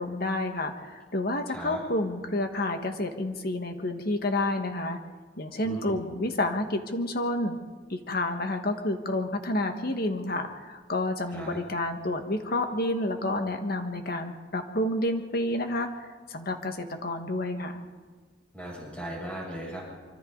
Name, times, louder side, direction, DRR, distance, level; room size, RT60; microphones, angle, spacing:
voice 1, 0.0-5.0 5.4-7.6 7.9-17.8, left 1 dB, 55° left, 5 dB, 1.8 m, -29 dB
voice 2, 1.5-1.8 5.6-6.0 11.3-11.6 18.5-19.8, right 1 dB, 5° left, -4 dB, 7.9 m, -37 dB
25.5 x 25.0 x 4.1 m, 1.5 s
head